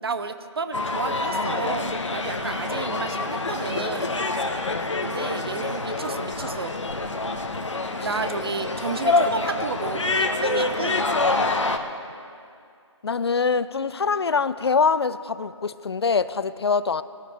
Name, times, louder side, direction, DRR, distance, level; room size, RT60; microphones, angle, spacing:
voice 1, 0.0-4.1 5.0-6.7 8.0-11.0, right 4 dB, 55° right, 10 dB, 0.8 m, -32 dB
sound 1, 0.7-11.8, left 3 dB, 75° left, 1.2 m, -26 dB
voice 2, 13.0-17.0, left 5 dB, 55° left, 16 dB, 0.5 m, -24 dB
19.5 x 12.5 x 3.5 m, 2.3 s
figure-of-eight pair, 155°, 16 cm